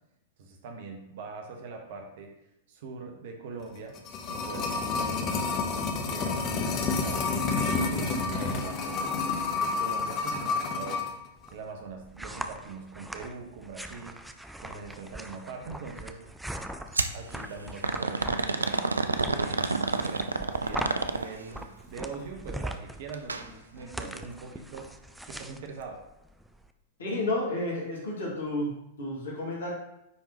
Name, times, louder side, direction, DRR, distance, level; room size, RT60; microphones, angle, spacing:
voice 1, 0.4-2.3 2.7-4.0 4.3-5.7 6.1-7.3 7.7-9.2 9.6-11.1 11.5-14.2 14.6-16.2 17.1-24.9 25.3-26.0, right 4 dB, 50° right, 3 dB, 0.9 m, -42 dB
sound 1, 3.7-11.1 11.4-11.5, left 4 dB, 35° left, 0.8 m, -29 dB
sound 2, 11.4-26.7, right 1 dB, 5° right, 0.4 m, -41 dB
sound 3, 17.0-17.2 17.8-21.5 23.1-23.4 23.8-23.9 24.7-24.8, right 3 dB, 75° right, 0.4 m, -29 dB
voice 2, 27.0-29.7, left 2 dB, 65° left, -5 dB, 2.2 m, -31 dB
9.4 x 3.7 x 3.0 m, 0.85 s
figure-of-eight pair, 95°, 0 cm